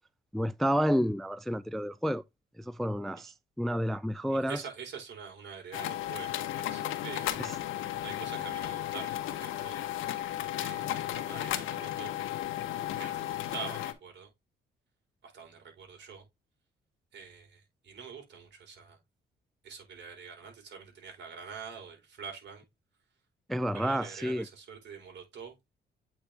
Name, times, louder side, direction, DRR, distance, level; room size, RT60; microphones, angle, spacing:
voice 1, 0.3-2.2 2.6-4.6 23.5-24.4, equal, ahead, 0.3 m, -30 dB
voice 2, 4.3-7.4 8.0-10.3 10.6-12.1 12.9-14.3 15.2-16.2 17.1-19.0 19.6-22.6 23.7-25.5, right 6 dB, 65° right, 4.5 m, -45 dB
sound 1, 5.7-13.9, left 12 dB, 85° left, 1.2 m, -34 dB
8.5 x 4.5 x 3.4 m
cardioid pair, 90°, 20 cm